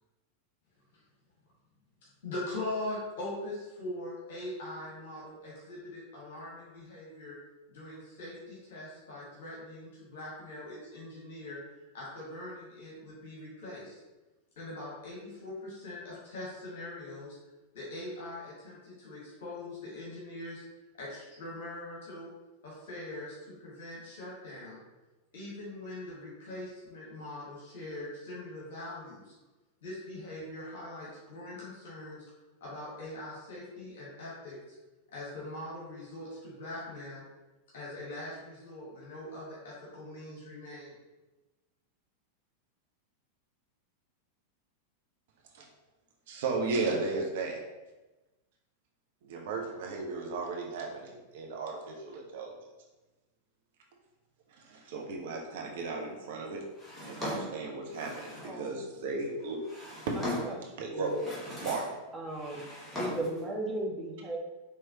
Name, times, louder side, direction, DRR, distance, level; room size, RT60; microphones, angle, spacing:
voice 1, 2.2-7.3 7.7-11.6 11.9-14.0 14.6-17.4 17.7-20.6 21.0-22.3 22.6-24.8 25.3-29.3 29.8-32.2 32.6-34.6 35.1-37.2 37.7-40.9, left 1 dB, 55° left, -6 dB, 1.4 m, -42 dB
voice 2, 46.3-47.6 49.2-52.5 54.5-56.6 57.0-59.6 60.0-60.1 60.8-61.1 61.6-61.8, right 3 dB, 55° right, 0 dB, 0.7 m, -35 dB
Drawer open or close, 56.8-58.6 59.4-60.7 61.1-62.0 62.3-63.4, left 1 dB, 10° left, 1.2 m, -39 dB
voice 3, 58.4-58.8 60.2-61.2 62.1-62.7 63.0-64.4, right 1 dB, 15° right, -1 dB, 0.7 m, -36 dB
4.6 x 3.2 x 2.8 m, 1.1 s
figure-of-eight pair, 90°, 0 cm